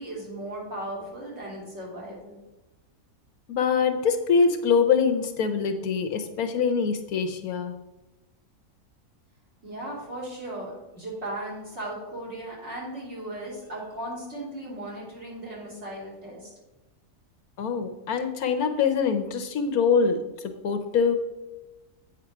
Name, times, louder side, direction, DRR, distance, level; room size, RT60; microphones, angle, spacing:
voice 1, 0.0-2.4 9.6-16.5, right 1 dB, 45° right, -5 dB, 3.2 m, -37 dB
voice 2, 3.5-7.7 17.6-21.2, left 5 dB, 70° left, 6 dB, 1.2 m, -24 dB
8.5 x 4.9 x 5.9 m, 1.1 s
omnidirectional pair, 1.6 m